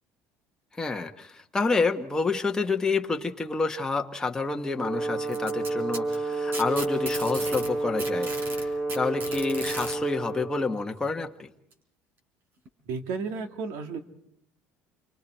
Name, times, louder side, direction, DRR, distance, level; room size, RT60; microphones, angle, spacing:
voice 1, 0.8-11.5, left 3 dB, 10° left, 3 dB, 1.4 m, -28 dB
Brass instrument, 4.7-10.7, right 2 dB, 10° right, 2.6 m, -30 dB
Packing tape duct tape, 5.3-7.7 8.0-10.0 11.1-11.2 11.7-11.8 12.7-12.8, right 2 dB, 40° right, 4.5 m, -36 dB
voice 2, 12.9-14.0, right 5 dB, 80° right, 6 dB, 2.3 m, -33 dB
29.0 x 24.5 x 4.5 m, 0.74 s
cardioid pair, 135°, 5 cm